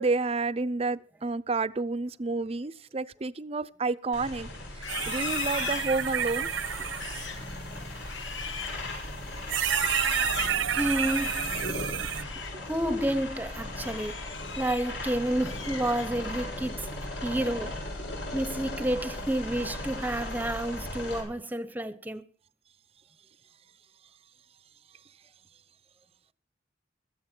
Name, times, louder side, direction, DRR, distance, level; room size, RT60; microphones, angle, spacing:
voice 1, 0.0-4.5 4.8-6.5 12.5-12.6, right 3 dB, 30° right, 0.6 m, -30 dB
sound 1, 4.1-21.2, left 1 dB, 65° left, 6.2 m, -38 dB
Livestock farm animals working animals, 4.7-12.7 13.0-13.3 13.7-15.0 15.3-16.4, left 7 dB, 85° left, 2.4 m, -39 dB
sound 2, 4.9-7.3 8.7-8.8 9.5-12.2, right 9 dB, 90° right, 0.9 m, -30 dB
voice 2, 10.8-11.5 12.6-14.3 14.6-16.9 17.2-17.8 18.3-22.2, right 1 dB, 10° right, 0.9 m, -30 dB
17.0 x 14.0 x 4.5 m
head